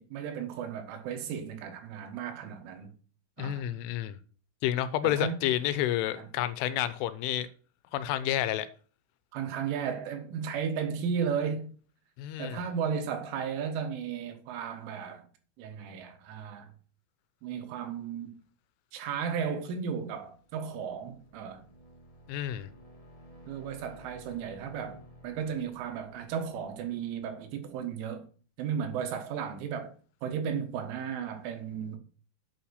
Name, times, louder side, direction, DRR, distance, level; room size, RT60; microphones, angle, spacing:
voice 1, 0.0-2.9 3.4-3.6 5.0-5.4 6.2-6.3 9.3-11.7 12.4-15.3 15.6-16.7 17.4-18.4 18.9-21.6 23.5-28.3 28.6-29.9 30.2-32.0, right 7 dB, 80° right, 3.9 m, -34 dB
voice 2, 3.4-4.2 4.6-7.5 7.9-8.7 12.2-12.6 22.3-22.7, left 12 dB, 85° left, 3.2 m, -30 dB
sound 1, 20.3-27.9, right 1 dB, 55° left, 0.4 m, -54 dB
9.1 x 5.9 x 6.4 m
omnidirectional pair, 5.6 m